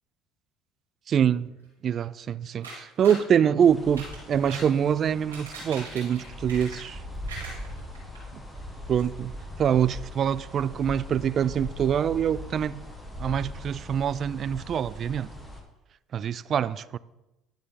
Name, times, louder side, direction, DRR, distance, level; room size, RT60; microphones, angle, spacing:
voice 1, 1.1-1.6 1.8-7.0 8.9-9.3 9.6-12.8 13.2-15.3 16.1-17.0, right 8 dB, 45° right, 0.3 m, -25 dB
sound 1, 2.6-3.3 3.8-4.7 5.2-7.0 7.3-8.2 8.6-8.7 9.0-9.1, right 2 dB, 90° right, 3.0 m, -41 dB
sound 2, 3.6-15.6, left 1 dB, 5° left, 1.8 m, -40 dB
11.0 x 7.0 x 3.8 m
hypercardioid pair, 60°, 0 cm